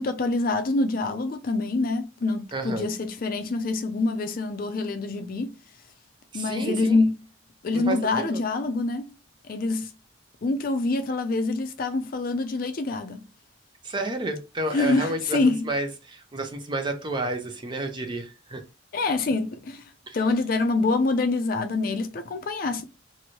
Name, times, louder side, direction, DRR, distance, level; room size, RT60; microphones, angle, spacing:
voice 1, 0.0-5.5 6.3-7.1 7.6-9.1 9.5-9.9 10.4-13.3 14.7-15.6 18.9-22.8, left 3 dB, 50° left, 0.4 m, -26 dB
voice 2, 2.5-2.9 6.3-7.0 7.7-8.4 13.8-18.6 20.1-20.2, right 2 dB, 25° right, 0.5 m, -31 dB
3.0 x 2.6 x 2.8 m
head